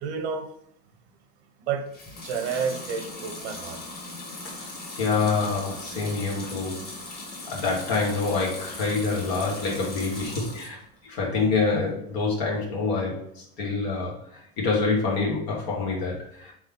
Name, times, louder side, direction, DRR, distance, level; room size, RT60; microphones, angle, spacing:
voice 1, 0.0-0.5 1.7-1.9 2.2-3.8, right 6 dB, 80° right, 6 dB, 0.8 m, -30 dB
Water tap faucet / Sink (filling or washing) / Liquid, 1.9-10.8 11.2-11.9, left 2 dB, 30° left, 1.4 m, -39 dB
voice 2, 4.9-6.9 7.5-16.5, left 4 dB, 70° left, -3 dB, 1.3 m, -27 dB
3.6 x 3.1 x 3.6 m, 0.70 s
supercardioid pair, 110°, 33 cm